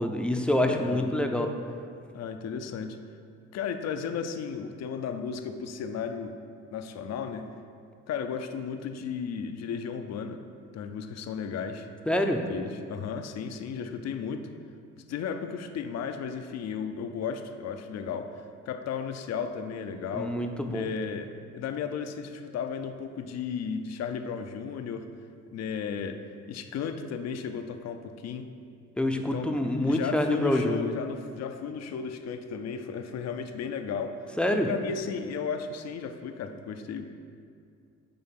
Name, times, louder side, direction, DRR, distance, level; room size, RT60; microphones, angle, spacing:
voice 1, 0.0-1.5 12.1-12.4 20.1-20.9 29.0-30.9 34.4-34.7, left 1 dB, 5° left, 4 dB, 0.5 m, -26 dB
voice 2, 0.7-1.1 2.1-3.0 3.5-6.4 6.7-7.5 8.1-10.4 10.7-11.9 12.5-14.5 15.0-18.3 18.7-20.4 20.7-25.1 25.5-26.2 26.5-28.5 29.1-29.6 29.8-34.1 34.5-37.1, left 6 dB, 60° left, 7 dB, 0.5 m, -34 dB
7.7 x 3.5 x 5.8 m, 2.3 s
cardioid pair, 90°, 30 cm